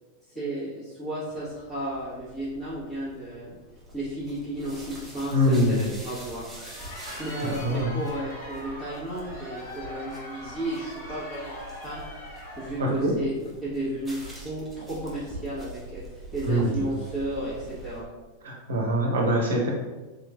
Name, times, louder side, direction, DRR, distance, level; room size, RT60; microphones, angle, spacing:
voice 1, 0.3-3.5 3.9-6.4 7.2-12.0 12.6-13.3 13.6-16.0 16.3-18.0, right 1 dB, 20° left, -13 dB, 1.4 m, -33 dB
sound 1, 1.3-18.0, equal, 10° right, 0.9 m, -45 dB
voice 2, 5.3-6.0 7.0-7.9 12.8-13.1 16.5-17.0 18.4-19.7, equal, 65° right, 0 dB, 0.7 m, -25 dB
Crowd, 6.4-12.9, left 1 dB, 60° left, 1.4 m, -41 dB
3.6 x 3.0 x 2.4 m, 1.2 s
figure-of-eight pair, 90°, 0 cm